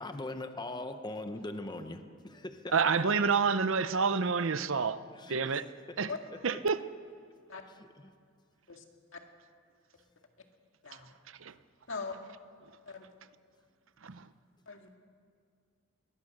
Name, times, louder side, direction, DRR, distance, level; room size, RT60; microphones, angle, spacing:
voice 1, 0.0-3.3 5.1-6.0 8.0-8.1, left 2 dB, 20° left, 0.9 m, -41 dB
voice 2, 2.7-5.0 5.3-5.7 6.0-6.1 6.4-6.8 11.4-11.5 14.0-14.2, right 5 dB, 65° right, 0.7 m, -28 dB
voice 3, 10.8-11.1 11.9-12.2 12.9-13.0 14.7-15.0, left 4 dB, 65° left, 2.2 m, -40 dB
22.5 x 20.0 x 6.7 m
head